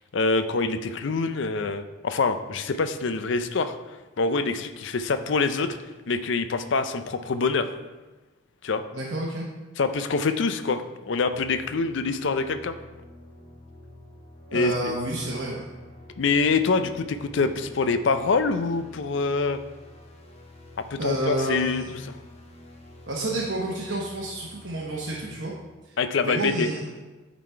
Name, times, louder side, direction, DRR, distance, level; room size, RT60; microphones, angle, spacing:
voice 1, 0.1-3.8 4.2-5.8 6.1-7.7 8.6-8.8 9.8-12.7 14.5-15.0 16.2-19.6 20.9-22.2 26.0-26.7, left 4 dB, 60° left, 9 dB, 0.5 m, -25 dB
voice 2, 8.9-9.5 14.5-15.7 21.0-21.9 23.1-25.5 25.9-26.9, right 1 dB, 60° right, -4 dB, 0.9 m, -30 dB
sound 1, 11.3-25.4, left 1 dB, 30° left, 0.8 m, -48 dB
9.3 x 4.1 x 4.5 m, 1.2 s
head